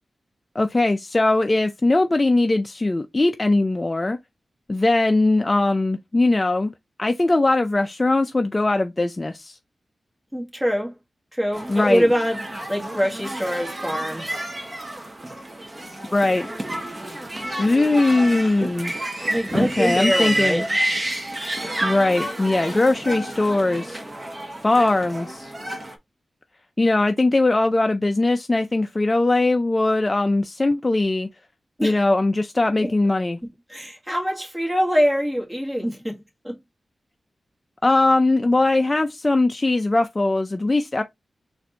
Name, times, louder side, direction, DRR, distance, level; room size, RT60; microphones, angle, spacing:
voice 1, 0.6-4.2 4.7-6.7 7.0-9.6 11.7-12.1 16.1-16.5 17.6-18.9 19.5-20.6 21.8-24.0 24.6-25.5 26.8-31.3 31.8-33.4 37.8-41.0, left 2 dB, 25° left, 0.4 m, -20 dB
voice 2, 10.3-10.9 11.3-12.4 12.7-14.5 19.3-20.6 31.8-32.0 32.8-32.9 33.7-36.6, equal, 10° right, 1.5 m, -24 dB
sound 1, 11.5-25.9, right 1 dB, 30° right, 1.0 m, -29 dB
4.0 x 2.5 x 4.3 m
wide cardioid pair, 105°, 0 cm